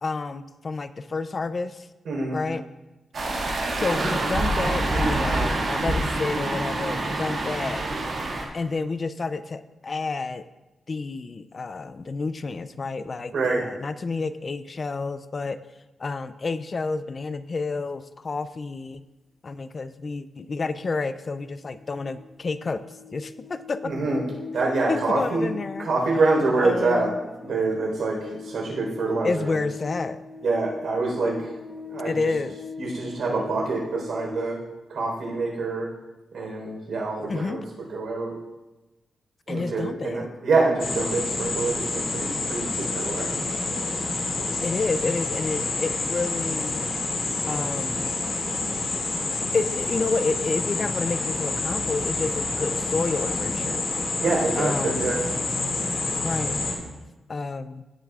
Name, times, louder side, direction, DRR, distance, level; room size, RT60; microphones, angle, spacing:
voice 1, 0.0-1.9 2.3-2.7 3.7-7.9 8.5-10.5 10.9-15.6 16.0-19.1 19.4-23.9 24.9-25.9 26.5-27.2 29.2-30.2 32.0-32.6 37.3-37.6 39.5-40.3 44.6-46.8 47.5-48.1 49.5-53.9 54.6-55.2 56.1-56.6 57.3-57.9, left 4 dB, 35° left, 13 dB, 0.3 m, -29 dB
voice 2, 2.1-2.4 13.3-13.6 23.8-24.2 24.5-25.5 25.8-27.1 27.4-29.6 30.4-31.5 31.9-32.1 32.8-34.6 34.9-35.9 36.3-37.6 37.9-38.4 39.5-43.4 54.2-55.2, right 3 dB, 70° right, -1 dB, 3.8 m, -26 dB
sound 1, 3.1-8.5, right 2 dB, 55° right, 1.7 m, -26 dB
sound 2, 20.7-20.8 21.1-34.3, left 4 dB, 20° left, 1.0 m, -41 dB
sound 3, 40.8-56.7, left 3 dB, 55° left, 2.0 m, -28 dB
16.5 x 8.2 x 2.4 m, 1.1 s
wide cardioid pair, 135°, 0 cm